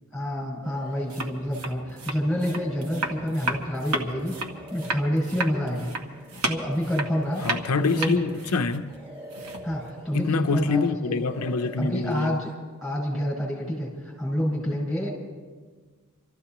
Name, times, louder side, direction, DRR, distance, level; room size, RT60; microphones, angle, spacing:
voice 1, 0.1-4.3 4.7-5.9 6.4-7.4 7.7-8.2 9.6-11.2 11.8-12.5 12.8-15.1, equal, ahead, 5.5 m, -28 dB
sound 1, 0.6-1.6 2.0-8.6 8.9-10.9 11.1-12.5, equal, 25° right, 2.1 m, -45 dB
sound 2, 1.0-9.9, right 2 dB, 80° right, 1.4 m, -33 dB
voice 2, 7.4-8.9 10.1-12.4, left 4 dB, 90° left, 0.6 m, -26 dB
27.0 x 14.0 x 3.0 m
head